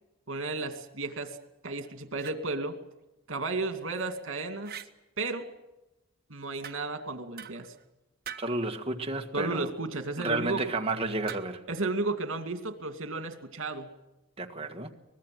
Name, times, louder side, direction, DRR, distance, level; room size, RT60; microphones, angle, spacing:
voice 1, 0.3-1.4 1.6-2.8 3.3-4.7 5.2-5.5 6.3-7.7 9.3-10.6 11.7-13.9, right 3 dB, 75° right, 7 dB, 2.5 m, -33 dB
sound 1, 1.7-2.4 3.8-4.2 4.6-4.9 6.6-7.0 7.4-7.8 8.2-8.6 11.3-11.7, right 9 dB, 50° right, 1.3 m, -44 dB
voice 2, 8.4-9.7 10.2-11.6 14.4-14.9, right 2 dB, 30° right, 4 dB, 1.8 m, -31 dB
24.0 x 20.5 x 7.9 m, 0.97 s
head